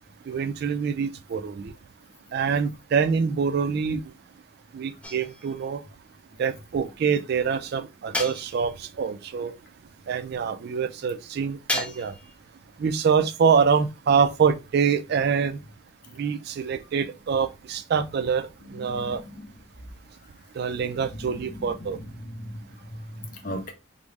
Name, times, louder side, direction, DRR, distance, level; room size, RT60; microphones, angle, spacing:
voice 1, 0.3-1.7 2.3-4.0 4.7-5.8 6.4-9.5 10.1-12.1 12.8-15.6 16.2-18.5 18.7-19.2 20.6-22.0, right 6 dB, 55° right, 0.3 m, -25 dB
sound 1, 5.0-5.7 8.1-8.9 11.7-12.4, left 1 dB, 5° left, 0.5 m, -33 dB
voice 2, 18.8-19.5 21.3-23.7, equal, 45° left, 0.7 m, -38 dB
3.6 x 2.1 x 3.3 m
head